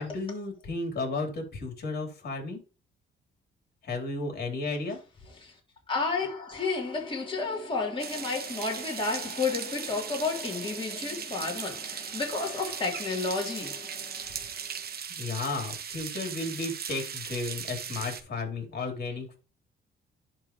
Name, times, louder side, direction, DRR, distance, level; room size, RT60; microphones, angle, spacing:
voice 1, 0.0-2.6 3.8-5.0 15.1-19.3, left 3 dB, 55° left, 3.3 m, -33 dB
voice 2, 5.9-14.7, left 4 dB, 25° left, 3.3 m, -32 dB
sound 1, 8.0-18.2, right 7 dB, 50° right, 1.0 m, -38 dB
11.0 x 3.9 x 3.1 m
cardioid pair, 90°, 20 cm